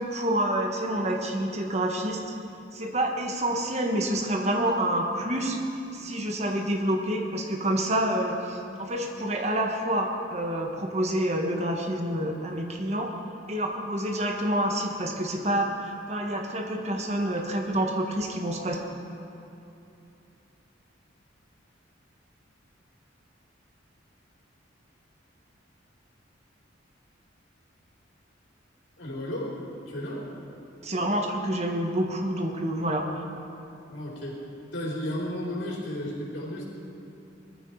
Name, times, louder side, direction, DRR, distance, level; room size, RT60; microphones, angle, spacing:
voice 1, 0.0-2.2 2.7-5.6 5.9-13.1 13.5-18.8 30.8-33.1, right 1 dB, 35° right, 2 dB, 1.6 m, -28 dB
voice 2, 29.0-29.5 29.9-30.2 33.9-34.4 34.7-36.6, left 1 dB, 75° left, -4 dB, 4.4 m, -33 dB
20.0 x 14.0 x 4.9 m, 2.8 s
head